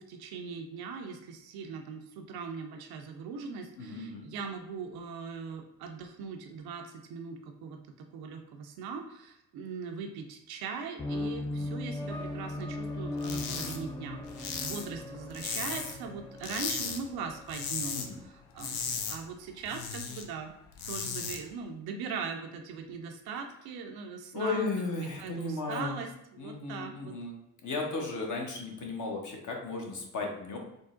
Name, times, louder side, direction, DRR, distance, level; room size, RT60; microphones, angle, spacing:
voice 1, 0.0-20.5 20.9-24.7 25.2-27.1, right 5 dB, 55° right, 4 dB, 0.5 m, -40 dB
voice 2, 3.8-4.3 11.5-11.7 17.9-18.2 24.3-26.0 26.4-27.4 27.6-30.6, left 3 dB, 40° left, 0 dB, 0.9 m, -35 dB
sound 1, 11.0-18.3, left 2 dB, 10° left, 0.4 m, -38 dB
sound 2, 13.2-13.8 14.1-16.1 16.4-17.0 17.3-18.1 18.4-20.2 20.6-21.4, left 6 dB, 65° left, 0.6 m, -36 dB
3.7 x 2.0 x 2.4 m, 0.80 s
hypercardioid pair, 40°, 45 cm